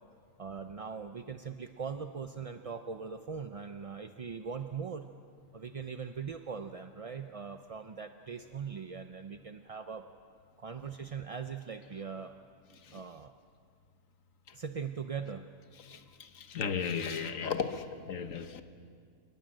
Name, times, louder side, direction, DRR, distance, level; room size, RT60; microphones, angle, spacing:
voice 1, 0.4-5.1 5.5-10.0 10.6-12.4 12.9-13.3 14.5-15.4, right 6 dB, 40° right, 0.5 m, -40 dB
voice 2, 15.8-18.6, left 6 dB, 70° left, 1.5 m, -35 dB
27.5 x 20.0 x 7.8 m
omnidirectional pair, 1.4 m